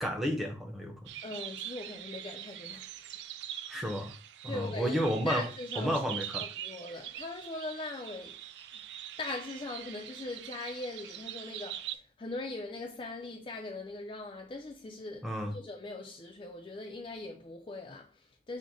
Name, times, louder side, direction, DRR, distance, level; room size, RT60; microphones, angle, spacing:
voice 1, 0.0-1.1 3.7-4.1 4.4-5.5 5.8-6.4 15.2-15.5, equal, ahead, 0.7 m, -31 dB
sound 1, 1.1-12.0, right 11 dB, 75° right, 0.3 m, -43 dB
voice 2, 1.2-3.1 4.5-5.0 5.2-8.4 8.7-8.8 9.2-18.6, left 2 dB, 30° left, 0.4 m, -41 dB
6.1 x 2.1 x 3.9 m
head